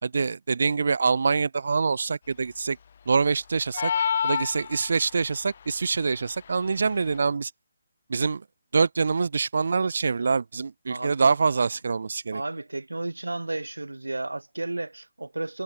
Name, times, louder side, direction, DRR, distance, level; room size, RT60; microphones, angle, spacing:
voice 1, 0.0-2.8 3.1-3.9 4.2-7.5 8.1-8.4 8.7-12.4, right 4 dB, 55° right, 1.2 m, -25 dB
sound 1, 3.7-5.2, left 7 dB, 45° left, 2.0 m, -27 dB
voice 2, 10.9-11.2 12.3-15.6, right 2 dB, 75° right, 4.5 m, -33 dB
figure-of-eight pair, 140°, 0 cm